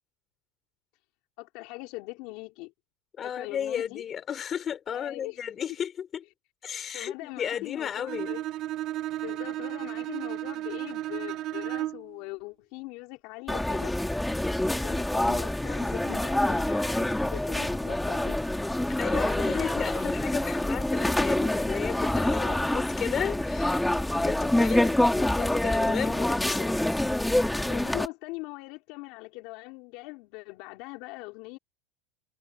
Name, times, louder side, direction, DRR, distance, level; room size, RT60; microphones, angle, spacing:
voice 1, 1.4-2.7 3.2-4.0 4.9-5.4 6.9-8.4 9.2-14.0 14.7-18.4 19.1-20.1 22.2-22.6 27.7-31.6, left 24 dB, 50° left, 4.6 m, -41 dB
voice 2, 3.2-6.2 6.6-8.3 19.0-26.8, left 8 dB, 20° left, 5.5 m, -34 dB
Bowed string instrument, 8.1-12.2, right 14 dB, 35° right, 1.1 m, -33 dB
sound 1, 13.5-28.1, left 1 dB, 5° left, 1.8 m, -26 dB
supercardioid pair, 165°, 0 cm